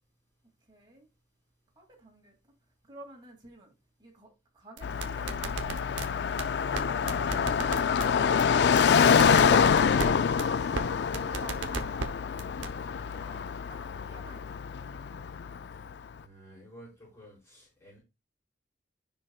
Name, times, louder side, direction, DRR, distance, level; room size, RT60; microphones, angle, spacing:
voice 1, 0.7-1.1 1.8-2.4 2.8-3.7 4.0-6.5 7.0-13.1 13.6-15.0, right 1 dB, 25° right, 2.5 m, -53 dB
Car passing by, 4.8-15.9, left 6 dB, 65° left, 0.3 m, -26 dB
sound 1, 4.8-6.1 6.4-6.5 6.8-6.9 7.1-8.1 8.4-8.5 8.8-8.9 9.2-10.1 10.4-10.5 10.8-10.9 11.1-12.1 12.4-12.7, right 4 dB, 85° right, 0.9 m, -34 dB
voice 2, 12.8-13.4 16.2-18.0, equal, 15° left, 4.6 m, -52 dB
10.5 x 5.4 x 2.4 m
head